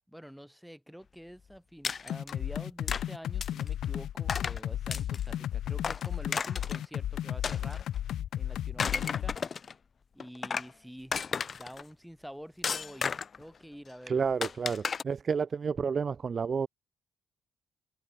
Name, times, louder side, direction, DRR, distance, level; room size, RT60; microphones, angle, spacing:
voice 1, 0.1-7.8 8.3-9.4 10.1-11.1 11.5-13.1 13.4-14.2, equal, ahead, 7.8 m, -47 dB
sound 1, 1.8-2.3 2.9-3.0 3.4-3.7 4.3-4.6 4.9-5.3 5.8-6.9 7.4-8.1 8.6-9.7 10.2-10.7 11.1-11.8 12.6-13.4 14.4-15.0, left 6 dB, 40° left, 5.5 m, -33 dB
sound 2, 2.1-9.4, left 11 dB, 70° left, 1.4 m, -34 dB
voice 2, 14.1-16.7, right 6 dB, 45° right, 1.8 m, -30 dB
cardioid pair, 90°, 0 cm